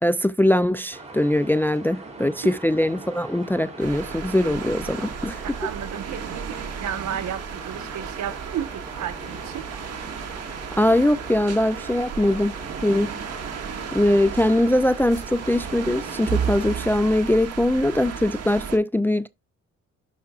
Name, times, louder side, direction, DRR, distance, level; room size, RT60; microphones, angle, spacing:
voice 1, 0.0-5.4 10.8-12.5 12.8-13.1 13.9-19.3, left 1 dB, 5° left, 0.4 m, -21 dB
sound 1, 0.9-16.7, right 2 dB, 20° right, 3.2 m, -41 dB
sound 2, 3.8-18.8, right 7 dB, 55° right, 1.8 m, -34 dB
voice 2, 5.4-9.7, right 9 dB, 70° right, 1.3 m, -33 dB
11.0 x 5.7 x 2.4 m
cardioid pair, 90°, 30 cm